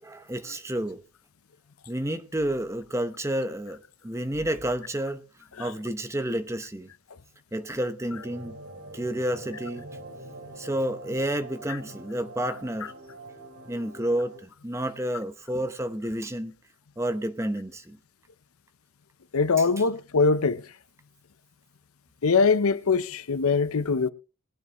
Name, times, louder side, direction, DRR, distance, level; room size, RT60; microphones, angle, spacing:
voice 1, 0.0-1.0 1.9-5.2 5.6-6.9 7.5-8.6 8.9-9.8 10.6-12.9 13.7-16.5 17.0-18.0 19.6-19.7, right 1 dB, 15° right, 0.9 m, -30 dB
sound 1, 8.1-14.4, right 2 dB, 75° right, 4.5 m, -44 dB
voice 2, 19.3-20.6 22.2-24.1, left 4 dB, 85° left, 0.7 m, -22 dB
20.5 x 9.5 x 3.0 m
head